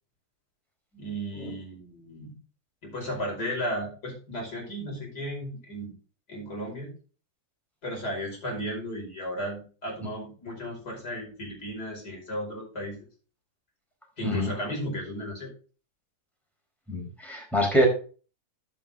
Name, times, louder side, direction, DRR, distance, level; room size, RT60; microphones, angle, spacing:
voice 1, 0.9-2.4 2.8-5.9 6.3-6.9 7.8-13.1 14.2-15.5, equal, 80° left, 0 dB, 5.8 m, -34 dB
voice 2, 16.9-17.9, equal, ahead, 0 dB, 4.5 m, -25 dB
11.5 x 8.4 x 3.8 m, 0.37 s
omnidirectional pair, 1.7 m